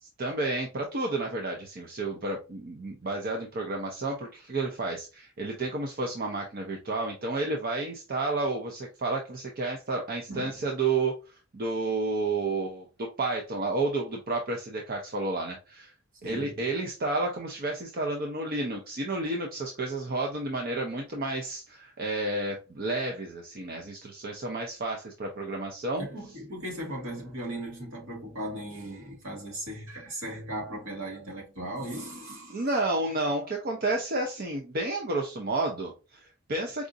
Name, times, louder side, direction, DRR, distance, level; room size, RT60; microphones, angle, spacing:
voice 1, 0.2-11.2 11.5-15.9 16.2-26.1 32.5-36.9, right 2 dB, 45° right, 0.6 m, -31 dB
voice 2, 16.2-16.6 26.0-32.7, right 1 dB, 70° right, 1.7 m, -37 dB
4.8 x 2.5 x 2.6 m
head